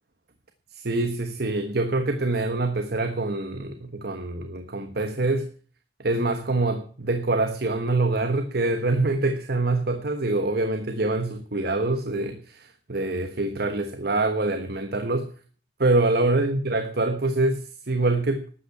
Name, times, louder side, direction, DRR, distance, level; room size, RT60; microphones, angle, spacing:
voice 1, 0.7-5.5 6.0-15.3 15.8-18.5, right 2 dB, 60° right, 8 dB, 1.3 m, -25 dB
13.0 x 8.5 x 8.4 m, 0.43 s
head